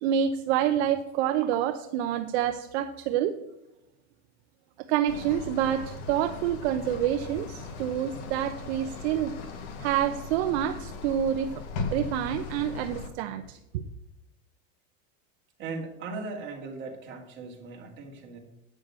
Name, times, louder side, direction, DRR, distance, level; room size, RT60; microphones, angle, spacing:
voice 1, 0.0-3.4 4.8-9.3 9.8-11.6 11.9-13.8, right 10 dB, 60° right, 8 dB, 0.8 m, -27 dB
sound 1, 5.1-13.1, left 4 dB, 55° left, 1.8 m, -38 dB
voice 2, 15.6-18.4, right 3 dB, 30° right, 0 dB, 2.5 m, -38 dB
9.1 x 6.5 x 7.5 m, 0.89 s
supercardioid pair, 160°, 37 cm